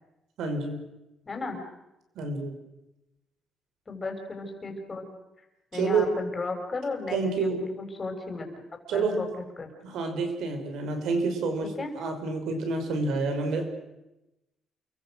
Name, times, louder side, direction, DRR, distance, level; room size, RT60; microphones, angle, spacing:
voice 1, 0.4-0.8 2.2-2.5 5.7-6.1 7.1-7.7 8.9-9.2 9.8-13.6, right 4 dB, 85° right, 6 dB, 5.8 m, -28 dB
voice 2, 1.3-1.6 3.9-5.1 5.7-8.5 8.9-9.3 9.6-9.7 11.6-11.9, left 3 dB, 25° left, 4 dB, 6.6 m, -34 dB
29.0 x 23.5 x 6.5 m, 0.94 s
cardioid pair, 120°, 0 cm